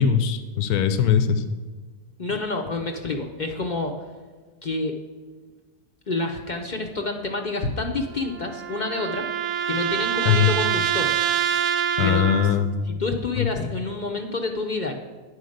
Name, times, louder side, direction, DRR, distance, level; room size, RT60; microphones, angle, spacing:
voice 1, 0.0-1.4 10.3-10.5 11.5-12.8 13.4-13.7, left 8 dB, 85° left, 10 dB, 1.1 m, -21 dB
voice 2, 2.2-4.0 4.6-4.9 6.1-9.3 9.7-11.1 12.0-12.3 12.9-14.9, left 3 dB, 45° left, 3 dB, 0.6 m, -28 dB
sound 1, 8.0-12.7, right 10 dB, 65° right, 0.8 m, -26 dB
9.9 x 4.8 x 6.4 m, 1.4 s
omnidirectional pair, 1.5 m